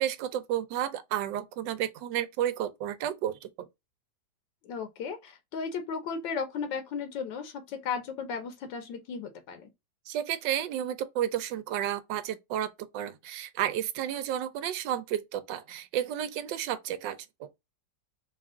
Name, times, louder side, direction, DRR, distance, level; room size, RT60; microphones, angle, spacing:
voice 1, 0.0-3.7 10.1-12.7 12.9-17.5, right 11 dB, 85° right, 1.3 m, -32 dB
voice 2, 4.6-9.7, left 5 dB, 85° left, 1.4 m, -35 dB
3.5 x 2.4 x 3.5 m
omnidirectional pair, 1.9 m